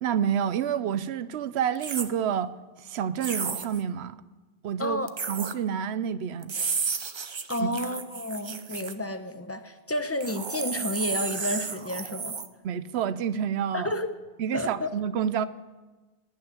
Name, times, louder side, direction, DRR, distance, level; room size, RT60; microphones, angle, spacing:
voice 1, 0.0-2.5 2.8-4.2 4.6-5.0 5.3-6.6 7.6-7.7 12.6-13.9 14.4-15.5, right 8 dB, 90° right, 15 dB, 0.9 m, -28 dB
sound 1, 1.8-2.1 3.2-3.8 5.1-5.5 6.4-8.9 10.2-12.5, right 5 dB, 35° right, 0.5 m, -32 dB
voice 2, 7.5-12.4 13.7-14.1 14.5-14.9, left 1 dB, 15° left, 8 dB, 0.7 m, -31 dB
17.5 x 6.1 x 9.4 m, 1.2 s
omnidirectional pair, 1.1 m